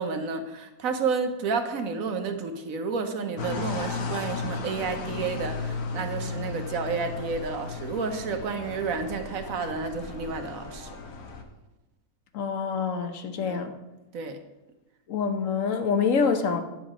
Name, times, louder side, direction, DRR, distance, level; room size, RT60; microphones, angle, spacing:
voice 1, 0.0-11.0 13.4-13.6 14.1-14.4, right 5 dB, 70° right, 6 dB, 1.3 m, -31 dB
sound 1, 3.4-11.4, left 4 dB, 90° left, 1.4 m, -35 dB
voice 2, 12.3-13.7 15.1-16.6, left 5 dB, 65° left, 7 dB, 1.1 m, -26 dB
9.7 x 7.4 x 4.9 m, 1.0 s
omnidirectional pair, 1.5 m